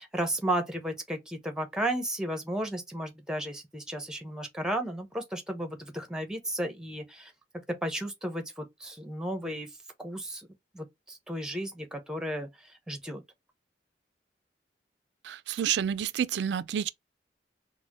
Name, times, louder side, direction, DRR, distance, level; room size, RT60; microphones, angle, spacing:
voice 1, 0.0-7.3 7.8-9.7 10.0-10.5 10.7-13.2, right 1 dB, 5° right, 0.8 m, -34 dB
voice 2, 15.2-16.9, right 9 dB, 70° right, 0.3 m, -29 dB
4.0 x 2.1 x 3.0 m
head